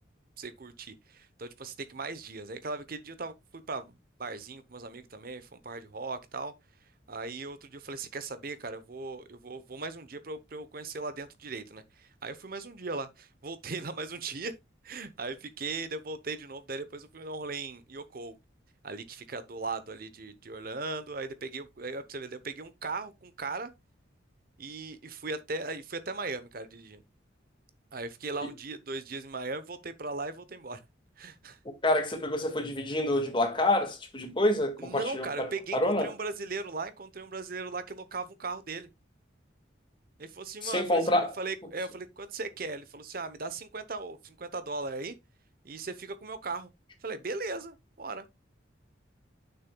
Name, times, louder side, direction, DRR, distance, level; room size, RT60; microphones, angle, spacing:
voice 1, 0.4-6.5 7.1-14.5 14.8-18.4 18.8-23.7 24.6-27.0 27.9-30.8 31.2-31.6 34.8-38.9 40.2-41.0 41.4-45.1 45.6-46.7 47.0-48.3, right 3 dB, 50° right, 0.8 m, -38 dB
voice 2, 31.8-36.1 40.6-41.4, left 1 dB, 25° left, 1.7 m, -27 dB
9.4 x 6.7 x 2.3 m
head